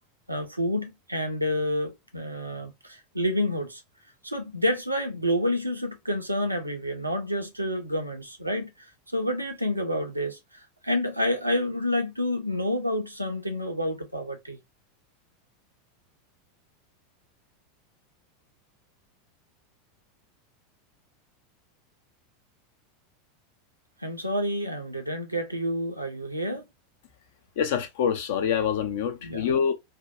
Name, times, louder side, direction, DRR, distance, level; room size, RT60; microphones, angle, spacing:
voice 1, 0.3-3.8 4.2-8.9 9.1-10.4 10.8-14.6 24.0-26.7 29.2-29.5, left 1 dB, 90° right, 0.6 m, -29 dB
voice 2, 27.6-29.7, left 7 dB, 60° left, 0.4 m, -26 dB
2.6 x 2.2 x 2.5 m
figure-of-eight pair, 85°, 0 cm